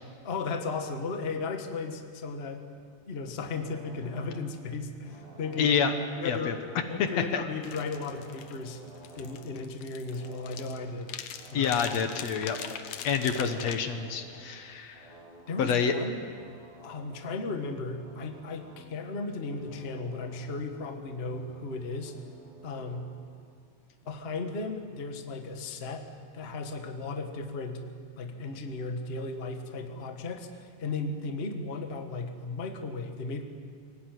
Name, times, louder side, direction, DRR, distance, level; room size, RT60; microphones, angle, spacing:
voice 1, 0.2-2.6 3.1-5.8 6.2-6.6 6.9-8.8 9.2-11.1 11.5-11.8 15.5-16.2 16.8-22.1 22.6-23.1 24.0-27.9 28.2-33.4, left 3 dB, 30° left, 5 dB, 1.2 m, -35 dB
sound 1, 3.5-4.6 4.8-9.6 9.8-10.9 11.2-14.5 14.9-15.4 16.0-23.3, right 1 dB, 60° right, 7.6 m, -52 dB
voice 2, 5.6-5.9 6.2-6.5 7.3-7.4 11.5-12.6 13.0-15.1 15.6-15.9, left 6 dB, 65° left, 7 dB, 2.4 m, -27 dB
sound 2, 7.6-13.8, left 9 dB, 90° left, 2.6 m, -42 dB
24.5 x 17.5 x 9.4 m, 2.2 s
omnidirectional pair, 3.3 m